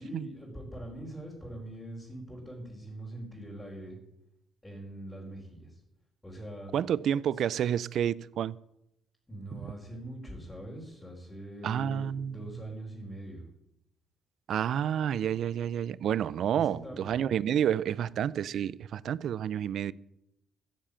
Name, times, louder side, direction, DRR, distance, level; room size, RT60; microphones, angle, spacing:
voice 1, 0.0-4.0 4.6-5.8 6.2-6.7 9.3-13.5 16.5-17.1, right 1 dB, 15° left, 4.6 m, -43 dB
voice 2, 6.7-8.6 11.6-12.4 14.5-19.9, right 9 dB, 70° right, 0.5 m, -29 dB
14.5 x 7.5 x 8.5 m
cardioid pair, 90°, 0 cm